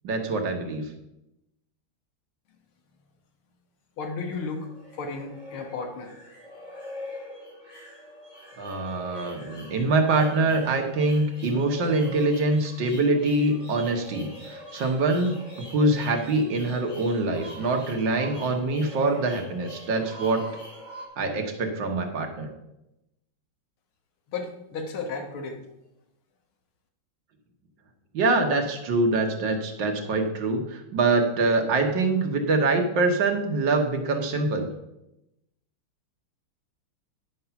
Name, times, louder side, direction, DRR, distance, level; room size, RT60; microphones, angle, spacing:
voice 1, 0.0-0.9 8.6-15.3 15.7-20.4 21.2-22.5 28.1-34.7, right 2 dB, 65° right, 4 dB, 1.8 m, -24 dB
voice 2, 4.0-6.2 24.3-25.6, left 4 dB, 80° left, 4 dB, 2.1 m, -34 dB
sound 1, 4.1-21.1, left 1 dB, 20° left, 2.3 m, -43 dB
10.5 x 5.5 x 5.8 m, 0.89 s
omnidirectional pair, 2.3 m